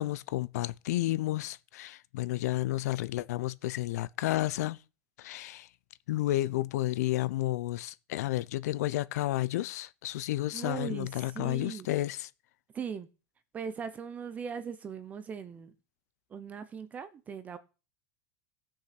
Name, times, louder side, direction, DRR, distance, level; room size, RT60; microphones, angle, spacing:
voice 1, 0.0-4.8 5.2-5.7 6.1-12.3, left 16 dB, 75° left, 0.8 m, -31 dB
voice 2, 10.5-11.9 12.7-13.1 13.5-15.7 16.3-17.6, right 7 dB, 15° right, 0.7 m, -39 dB
17.0 x 6.5 x 5.9 m
supercardioid pair, 170°, 9 cm